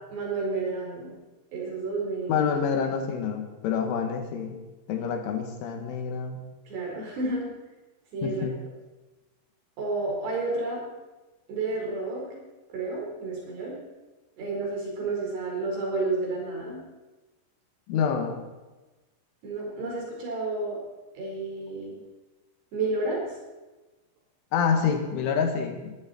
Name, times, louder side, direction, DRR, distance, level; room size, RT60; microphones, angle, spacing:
voice 1, 0.1-1.1 1.5-2.4 6.7-7.5 8.1-8.5 9.8-10.9 11.5-12.3 12.7-13.8 14.4-16.8 19.4-20.8 21.1-22.0 22.7-23.4, right 3 dB, 60° right, -2 dB, 6.6 m, -31 dB
voice 2, 2.3-4.6 4.9-6.4 8.2-8.6 17.9-18.4 24.5-26.0, left 6 dB, 85° left, 5 dB, 4.2 m, -27 dB
21.5 x 14.0 x 4.4 m, 1.2 s
omnidirectional pair, 5.4 m